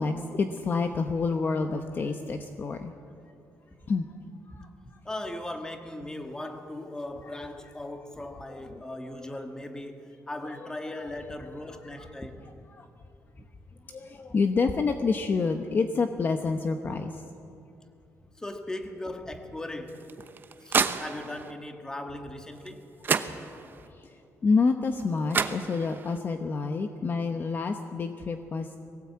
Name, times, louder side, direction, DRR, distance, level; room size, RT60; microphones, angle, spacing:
voice 1, 0.0-2.9 3.9-4.1 4.5-4.7 8.5-8.9 9.2-9.3 10.5-10.7 11.0-11.1 12.0-12.1 12.7-12.9 13.9-17.2 23.9-28.8, left 4 dB, 35° left, 6 dB, 0.9 m, -28 dB
voice 2, 5.0-12.4 13.4-13.5 18.2-20.1 20.6-22.9, left 1 dB, 10° left, 5 dB, 1.6 m, -38 dB
sound 1, 19.9-21.5 22.7-22.8 23.0-23.9 25.0-25.1 25.3-26.2, right 5 dB, 35° right, 0.8 m, -29 dB
21.5 x 18.0 x 8.5 m, 2.7 s
cardioid pair, 160°, 6 cm